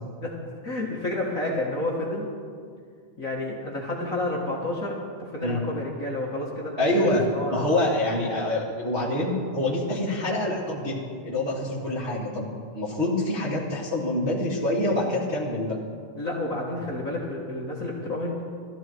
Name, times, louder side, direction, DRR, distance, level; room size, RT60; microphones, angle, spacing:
voice 1, 0.6-2.3 3.2-7.1 7.3-7.6 16.2-18.4, left 1 dB, 40° left, -4 dB, 1.2 m, -30 dB
voice 2, 6.8-7.2 7.5-11.0 11.2-12.5 12.7-15.8, left 1 dB, 20° right, -8 dB, 2.0 m, -26 dB
17.5 x 14.0 x 4.6 m, 2.2 s
omnidirectional pair, 3.9 m